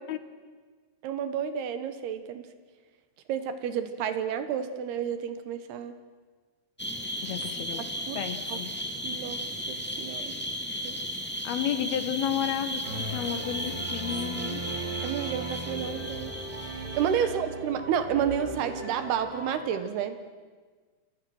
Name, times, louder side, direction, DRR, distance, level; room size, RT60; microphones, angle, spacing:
voice 1, 1.0-2.4 3.3-5.9 7.7-8.2 8.5-8.6 9.0-9.4 9.7-10.3 10.8-11.0 15.0-16.3 16.7-20.2, right 8 dB, 70° right, 10 dB, 3.0 m, -30 dB
sound 1, 6.8-17.3, equal, 10° left, 0.4 m, -35 dB
voice 2, 7.2-7.9 8.2-8.7 11.4-14.7 17.2-17.3, left 10 dB, 70° left, 10 dB, 2.7 m, -32 dB
sound 2, 12.8-19.6, right 2 dB, 50° right, 5.8 m, -37 dB
29.5 x 27.5 x 6.3 m, 1.5 s
omnidirectional pair, 5.0 m